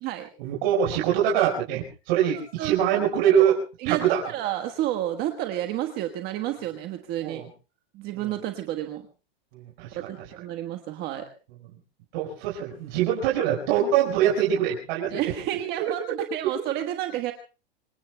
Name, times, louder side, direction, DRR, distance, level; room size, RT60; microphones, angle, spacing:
voice 1, 0.4-3.5 3.8-4.2 7.2-7.5 8.1-8.3 9.5-10.1 12.1-16.1 16.6-16.7, right 9 dB, 50° right, -2 dB, 4.9 m, -24 dB
voice 2, 2.3-3.5 3.8-7.4 7.9-9.0 9.9-11.3 15.1-17.3, right 13 dB, 30° right, 6 dB, 1.4 m, -31 dB
26.0 x 24.0 x 2.3 m, 0.33 s
supercardioid pair, 155°, 31 cm